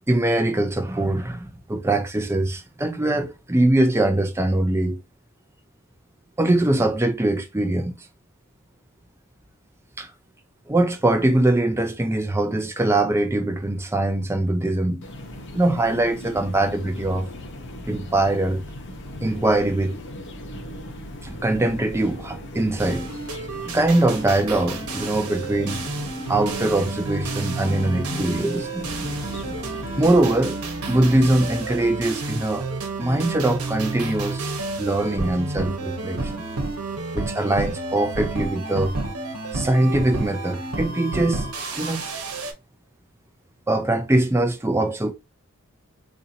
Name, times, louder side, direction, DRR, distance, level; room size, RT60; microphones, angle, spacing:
voice 1, 0.1-5.0 6.4-8.1 10.0-10.1 10.7-15.0 15.5-17.3 17.9-18.6 19.2-20.0 21.2-23.1 23.6-25.8 26.3-28.9 30.0-30.6 30.9-32.7 33.0-36.4 37.1-38.9 39.5-41.5 41.7-42.0 43.7-45.1, right 1 dB, 10° right, 0.5 m, -22 dB
sound 1, 15.0-30.2, left 1 dB, 55° left, 0.7 m, -38 dB
sound 2, 22.8-42.5, right 3 dB, 85° right, 1.0 m, -30 dB
4.1 x 2.7 x 2.7 m
head